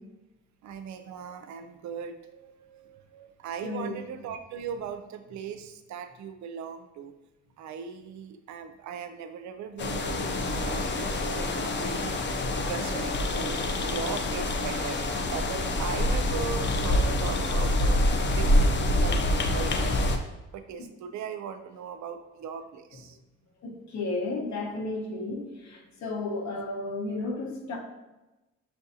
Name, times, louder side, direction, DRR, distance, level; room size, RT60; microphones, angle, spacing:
voice 1, 0.6-7.1 7.6-20.2 20.5-23.2, right 7 dB, 70° right, 8 dB, 0.5 m, -39 dB
voice 2, 3.6-4.0 12.4-12.5 23.6-27.8, left 2 dB, 65° left, 1 dB, 0.9 m, -33 dB
sound 1, 9.8-20.2, left 1 dB, 40° left, 0.5 m, -26 dB
6.2 x 2.6 x 2.6 m, 1.0 s
cardioid pair, 90°, 30 cm